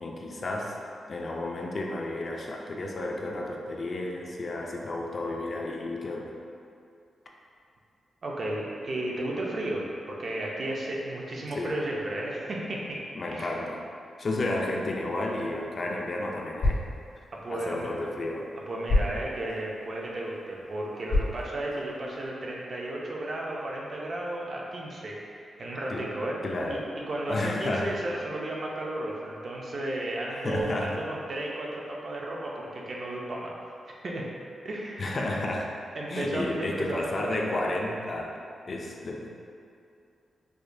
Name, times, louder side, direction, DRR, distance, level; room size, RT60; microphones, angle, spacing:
voice 1, 0.0-0.8 1.1-6.3 11.6-11.7 13.2-13.8 14.2-16.8 17.5-18.5 25.9-26.1 26.4-26.9 27.3-27.9 30.3-31.0 35.0-35.7 36.1-38.3 38.7-39.3, left 2 dB, 40° left, -1 dB, 0.3 m, -32 dB
voice 2, 8.2-13.0 13.3-13.5 17.3-17.9 18.7-26.4 26.7-26.8 27.1-33.5 34.0-34.3 34.6-35.4 36.0-37.4, right 1 dB, 45° right, -3 dB, 0.5 m, -34 dB
sound 1, 15.3-22.3, left 2 dB, 90° left, 1.5 m, -33 dB
4.7 x 2.1 x 2.6 m, 2.5 s
wide cardioid pair, 150°, 0 cm